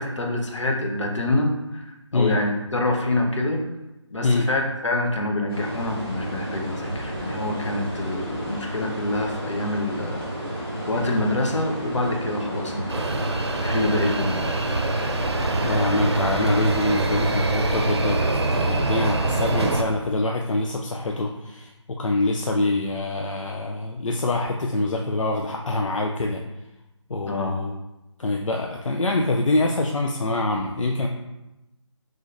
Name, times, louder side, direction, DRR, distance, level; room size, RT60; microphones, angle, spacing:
voice 1, 0.0-3.7 4.1-10.2 10.8-13.2 13.6-14.4 27.3-27.6, left 2 dB, 70° left, 1 dB, 1.1 m, -26 dB
sound 1, 5.5-17.3, equal, ahead, 0.4 m, -32 dB
sound 2, 12.9-19.8, right 2 dB, 60° right, 0.6 m, -24 dB
voice 2, 15.6-18.3 18.5-26.4 27.1-27.7 28.2-31.1, left 2 dB, 90° left, 1 dB, 0.6 m, -25 dB
5.1 x 3.8 x 2.6 m, 0.97 s
figure-of-eight pair, 175°, 16 cm